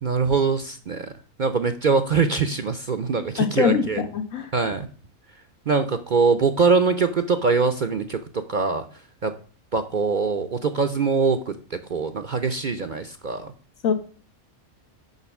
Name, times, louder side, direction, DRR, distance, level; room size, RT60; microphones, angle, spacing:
voice 1, 0.0-1.1 1.4-4.0 4.5-4.9 5.7-9.4 9.7-13.5, right 4 dB, 50° right, 9 dB, 0.6 m, -23 dB
voice 2, 3.4-4.5 13.8-13.9, left 6 dB, 80° left, 6 dB, 1.7 m, -22 dB
6.7 x 5.6 x 7.0 m, 0.42 s
omnidirectional pair, 1.4 m